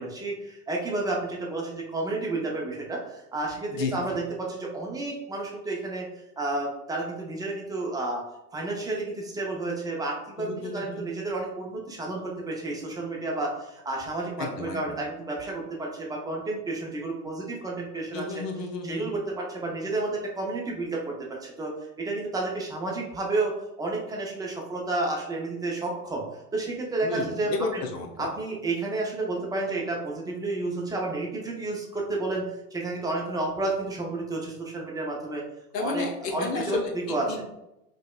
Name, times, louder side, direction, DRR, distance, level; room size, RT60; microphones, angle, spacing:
voice 1, 0.0-6.1 6.4-8.2 8.5-18.4 18.8-21.0 21.4-21.7 22.0-23.5 23.8-26.2 26.5-27.8 28.2-35.4 35.8-37.2, right 2 dB, 10° right, -2 dB, 0.4 m, -31 dB
voice 2, 3.7-4.2 10.4-11.0 14.4-15.0 18.1-19.1 27.0-28.3 35.7-36.9 37.3-37.4, left 4 dB, 80° left, 3 dB, 0.8 m, -32 dB
5.1 x 2.0 x 2.2 m, 0.88 s
hypercardioid pair, 90°, 47 cm